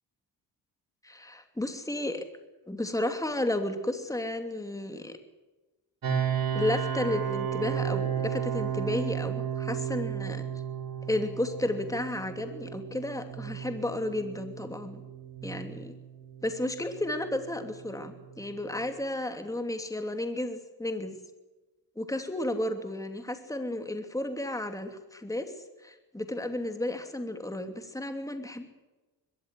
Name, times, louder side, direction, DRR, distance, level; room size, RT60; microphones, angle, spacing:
voice 1, 1.0-2.2 2.7-5.1 6.5-10.4 11.1-15.0 15.4-15.9 16.4-21.2 22.0-25.5 25.8-28.7, left 1 dB, 10° left, 6 dB, 2.8 m, -33 dB
sound 1, 6.0-18.8, right 8 dB, 60° right, 5.1 m, -34 dB
21.5 x 14.0 x 9.8 m, 1.1 s
cardioid pair, 75°, 40 cm